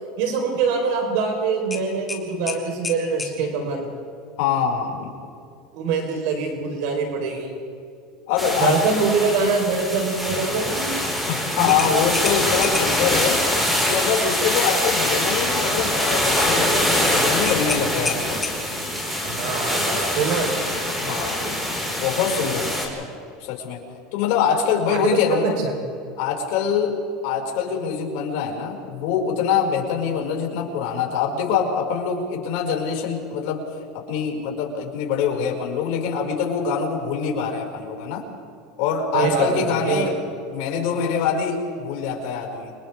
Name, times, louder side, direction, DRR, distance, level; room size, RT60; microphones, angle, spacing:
voice 1, 0.2-3.9 5.7-7.5 8.6-10.9 11.6-11.7 19.2-20.5 21.1-21.5 24.9-25.7 39.1-40.1, right 4 dB, 65° right, 2 dB, 4.0 m, -24 dB
sound 1, 1.7-3.4 6.0-6.2 6.7-6.8 11.7-13.1 17.4-18.9, left 4 dB, 15° left, 2.1 m, -31 dB
voice 2, 4.4-5.1 8.3-8.8 11.1-13.4 13.8-18.4 21.0-21.4 22.0-23.1 23.4-23.8 24.1-25.6 26.2-33.6 33.9-38.2 38.8-40.1 40.5-42.7, left 7 dB, 65° left, -1 dB, 5.4 m, -24 dB
sound 2, 8.4-22.9, equal, 10° right, 4.8 m, -24 dB
29.5 x 25.0 x 3.5 m, 2.5 s
supercardioid pair, 145°, 0 cm